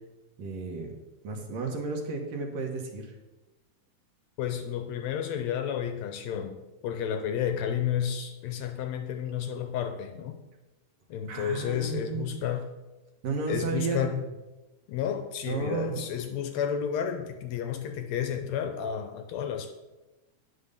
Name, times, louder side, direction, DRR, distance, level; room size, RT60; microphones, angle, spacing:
voice 1, 0.4-0.9 1.2-3.1 11.3-12.3 13.2-14.2 15.5-16.0, right 4 dB, 65° right, 2 dB, 2.3 m, -33 dB
voice 2, 4.4-10.4 11.1-12.7 13.5-14.2 14.9-19.7, left 8 dB, 75° left, 7 dB, 1.7 m, -31 dB
9.7 x 5.5 x 6.7 m, 1.1 s
omnidirectional pair, 3.5 m